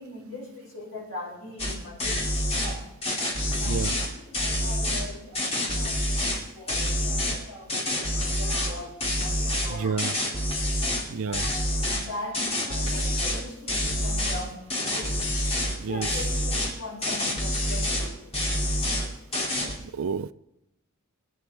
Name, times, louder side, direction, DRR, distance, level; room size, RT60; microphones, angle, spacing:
voice 1, 0.0-2.3 2.6-2.9 3.6-10.0 11.0-15.2 15.9-18.3, left 2 dB, 75° left, -3 dB, 5.2 m, -41 dB
sound 1, 1.6-1.7 2.0-2.7 3.0-5.1 5.4-6.4 6.7-7.4 7.7-8.7 9.0-11.1 11.3-12.1 12.3-13.4 13.7-14.4 14.7-15.8 16.0-16.7 17.0-18.1 18.3-19.1 19.3-19.7, left 1 dB, 25° left, 2.5 m, -27 dB
voice 2, 9.7-10.1 11.1-11.4 15.8-16.1 19.9-20.3, right 5 dB, 70° right, 15 dB, 0.5 m, -29 dB
23.0 x 9.5 x 3.4 m, 0.94 s
head